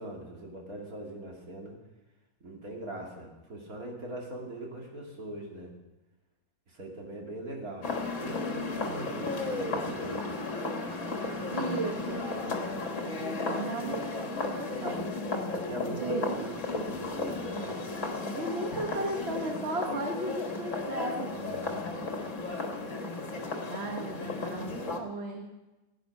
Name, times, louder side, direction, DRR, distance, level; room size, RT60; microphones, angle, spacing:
voice 1, 0.0-1.7 2.4-5.7 6.7-7.9 8.2-10.2 15.5-17.7 21.3-21.8, right 1 dB, 65° right, -1 dB, 2.9 m, -41 dB
sound 1, 7.8-25.0, left 3 dB, 55° left, 1.7 m, -34 dB
voice 2, 11.5-12.2 13.0-15.1 15.9-16.3 18.3-21.3 23.7-25.5, right 2 dB, 45° right, 2 dB, 1.4 m, -36 dB
16.0 x 9.5 x 5.3 m, 1.0 s
omnidirectional pair, 1.6 m